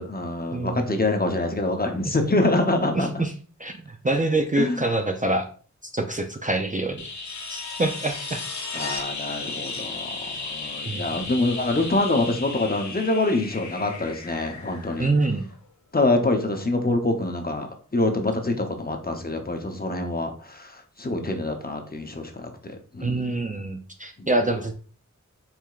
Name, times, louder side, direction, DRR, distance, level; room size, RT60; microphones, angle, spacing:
voice 1, 0.0-3.1 4.6-4.9 8.7-15.1 15.9-20.7 21.0-23.3 24.2-24.3, left 2 dB, 30° left, 4 dB, 0.7 m, -25 dB
voice 2, 0.5-0.9 2.9-3.3 3.6-5.5 5.9-7.1 7.5-8.4 8.7-8.9 10.9-11.2 15.0-15.5 23.0-24.7, right 2 dB, 25° right, 4 dB, 0.4 m, -26 dB
sound 1, 7.0-15.7 18.0-18.1, left 4 dB, 65° left, 0.6 m, -35 dB
4.7 x 3.5 x 2.4 m, 0.41 s
wide cardioid pair, 80°, 31 cm